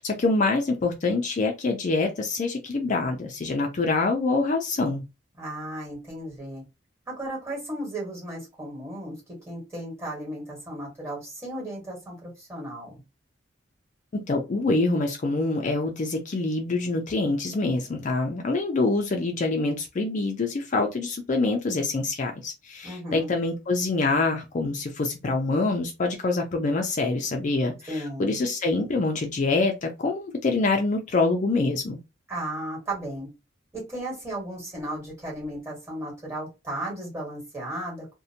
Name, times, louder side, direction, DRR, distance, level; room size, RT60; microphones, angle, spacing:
voice 1, 0.0-5.0 14.1-32.0, left 3 dB, 40° left, 0.4 m, -25 dB
voice 2, 5.4-6.6 7.1-9.1 9.5-13.0 22.8-23.3 27.9-28.3 32.3-33.3 33.7-38.1, right 1 dB, 15° right, 1.3 m, -35 dB
2.6 x 2.1 x 2.7 m
head